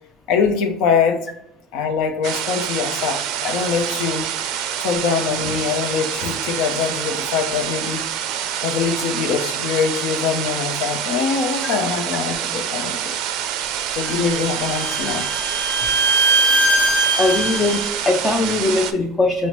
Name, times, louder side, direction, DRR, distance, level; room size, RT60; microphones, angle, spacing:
voice 1, 0.3-1.3 1.7-4.3 4.8-8.1 8.6-13.2 13.9-15.3, left 6 dB, 70° left, 0.6 m, -23 dB
sound 1, 2.2-18.9, right 9 dB, 65° right, 0.4 m, -26 dB
Bowed string instrument, 14.1-17.9, right 2 dB, 45° left, 0.8 m, -20 dB
voice 2, 17.2-19.5, left 2 dB, 20° left, 0.4 m, -20 dB
5.6 x 2.1 x 3.0 m
cardioid pair, 145°, 0 cm